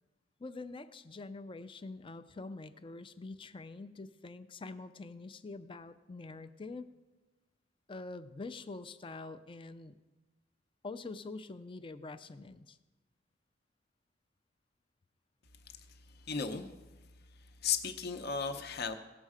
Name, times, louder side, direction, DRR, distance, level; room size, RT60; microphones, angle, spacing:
voice 1, 0.4-6.9 7.9-9.9 10.8-12.8, left 3 dB, 25° left, 11 dB, 0.4 m, -45 dB
voice 2, 16.3-16.7 17.6-18.9, left 6 dB, 55° left, 8 dB, 0.7 m, -34 dB
17.0 x 6.4 x 4.9 m, 1.2 s
head